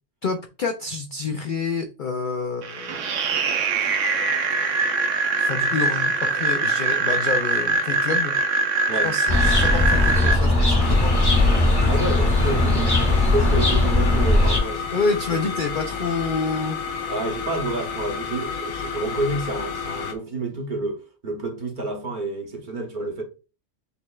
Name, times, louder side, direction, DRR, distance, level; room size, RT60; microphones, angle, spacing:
voice 1, 0.2-3.1 5.4-8.4 9.0-11.1 14.9-16.8, left 4 dB, 65° left, 0.5 m, -28 dB
sound 1, 2.6-10.3, right 4 dB, 70° right, 1.0 m, -23 dB
sound 2, 9.3-14.6, left 2 dB, 20° left, 0.9 m, -19 dB
sound 3, 10.8-20.1, left 6 dB, 85° left, 1.2 m, -31 dB
voice 2, 11.8-14.9 15.3-15.5 17.1-23.2, right 2 dB, 45° right, 0.9 m, -29 dB
6.6 x 3.1 x 2.3 m
omnidirectional pair, 1.4 m